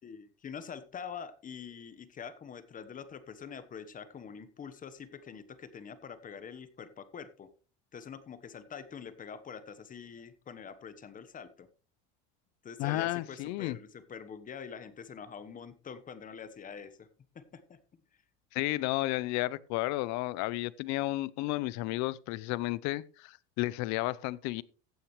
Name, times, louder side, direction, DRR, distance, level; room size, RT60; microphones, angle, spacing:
voice 1, 0.0-7.5 7.9-11.7 12.6-17.1 17.3-17.8, left 7 dB, 25° left, 1.2 m, -45 dB
voice 2, 12.8-13.8 18.5-24.6, left 18 dB, 60° left, 0.7 m, -32 dB
15.5 x 8.9 x 3.2 m
cardioid pair, 135°, 31 cm